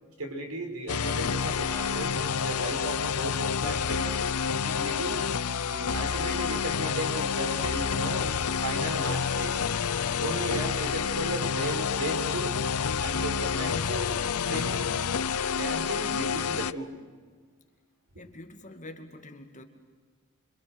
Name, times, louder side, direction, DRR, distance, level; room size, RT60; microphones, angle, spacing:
voice 1, 0.2-4.2 4.5-5.2 5.6-8.3 8.6-9.6 10.2-12.6 13.0-14.1 14.5-14.9 15.5-16.9, right 1 dB, 70° right, 4 dB, 5.7 m, -35 dB
sound 1, 0.9-16.7, left 6 dB, 80° left, 0.7 m, -29 dB
voice 2, 18.2-19.6, left 1 dB, 35° left, 5 dB, 2.3 m, -46 dB
27.0 x 26.5 x 8.1 m, 1.5 s
head